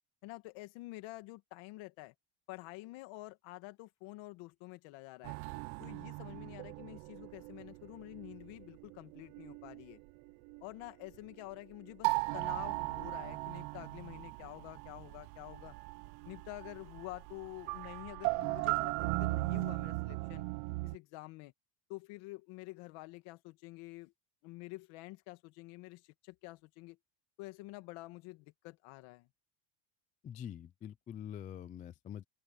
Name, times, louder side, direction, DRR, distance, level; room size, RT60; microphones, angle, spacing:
voice 1, 0.2-2.1 2.5-5.4 5.8-10.0 10.6-15.8 16.2-20.5 20.8-21.5 21.9-24.1 24.4-27.0 27.4-29.3, left 21 dB, 65° left, 2.1 m, -48 dB
sound 1, 5.2-9.9 10.3-11.3 11.8-21.0, right 25 dB, 75° right, 0.8 m, -38 dB
voice 2, 30.2-32.2, left 9 dB, 20° left, 0.3 m, -45 dB
open air
cardioid pair, 155°, 50 cm